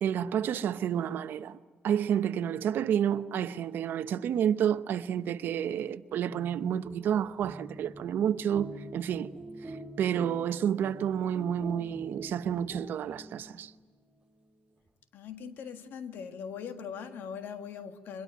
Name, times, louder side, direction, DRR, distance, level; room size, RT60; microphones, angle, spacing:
voice 1, 0.0-1.6 1.8-9.3 9.7-13.7, right 9 dB, 70° right, 0.8 m, -30 dB
sound 1, 6.3-13.8, right 1 dB, 20° right, 7.5 m, -47 dB
voice 2, 15.1-18.2, left 7 dB, 75° left, 1.8 m, -40 dB
23.5 x 21.5 x 9.5 m
cardioid pair, 115°, 4 cm